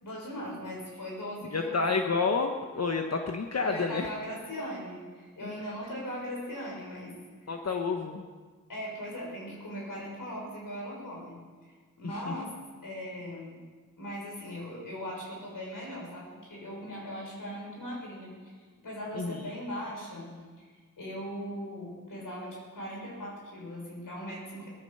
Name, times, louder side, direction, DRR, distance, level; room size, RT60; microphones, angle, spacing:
voice 1, 0.0-1.9 3.6-7.1 7.4-7.6 8.7-12.5 12.8-13.6 14.0-18.6 18.8-24.7, equal, 75° left, -3 dB, 6.5 m, -39 dB
voice 2, 1.5-4.1 7.5-8.2 12.3-12.4 19.2-19.4, left 4 dB, 50° left, 4 dB, 1.2 m, -29 dB
18.5 x 13.0 x 5.7 m, 1.5 s
cardioid pair, 45°, 33 cm